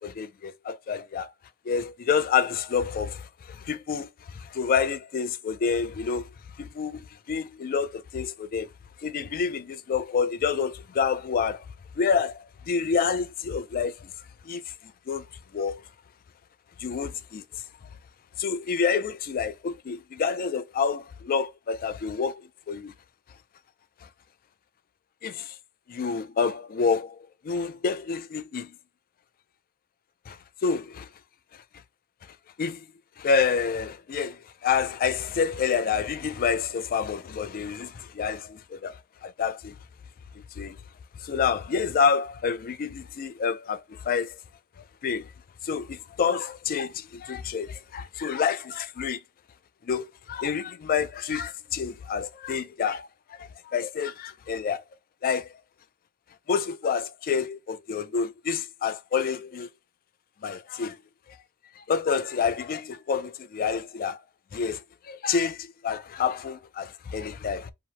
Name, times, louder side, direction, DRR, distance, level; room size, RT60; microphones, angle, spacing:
voice 1, 0.0-1.3 1.7-6.3 6.6-8.7 9.0-11.6 12.0-14.1 14.5-14.7 15.1-15.2 15.5-15.8 16.8-17.6 18.4-22.9 25.2-25.6 25.9-28.7 30.3-31.1 32.6-32.9 33.2-39.8 40.6-40.8 41.2-44.4 45.0-45.3 45.6-49.2 49.8-54.8 55.2-55.5 56.5-59.7 60.4-61.0 61.3-61.4 61.8-64.2 64.5-67.7, left 6 dB, 40° left, 0.3 m, -28 dB
2.9 x 2.1 x 2.9 m
head